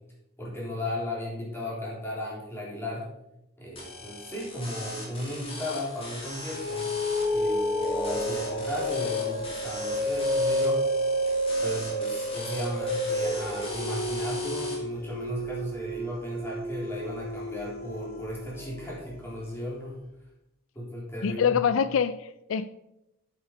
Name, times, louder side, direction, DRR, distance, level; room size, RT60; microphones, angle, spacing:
voice 1, 0.4-3.1 3.6-7.0 7.3-10.8 11.6-20.0 20.8-21.6, left 1 dB, 10° left, -5 dB, 3.5 m, -35 dB
sound 1, 3.8-14.8, left 2 dB, 30° left, 2.7 m, -41 dB
sound 2, 6.3-19.1, equal, 45° left, 1.5 m, -30 dB
voice 2, 21.2-22.7, left 7 dB, 75° left, 14 dB, 0.4 m, -25 dB
8.4 x 8.3 x 4.7 m, 0.86 s
head